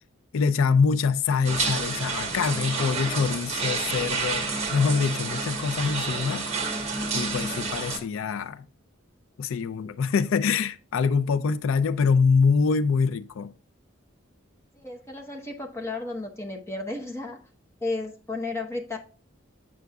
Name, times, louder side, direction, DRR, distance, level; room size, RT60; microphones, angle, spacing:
voice 1, 0.3-6.5 7.1-8.7 9.4-13.5, left 5 dB, 85° left, 0.4 m, -24 dB
sound 1, 1.4-8.0, right 4 dB, 30° right, 1.3 m, -29 dB
voice 2, 14.7-17.4 17.8-19.0, left 2 dB, 15° left, 1.0 m, -33 dB
7.9 x 6.1 x 2.3 m
head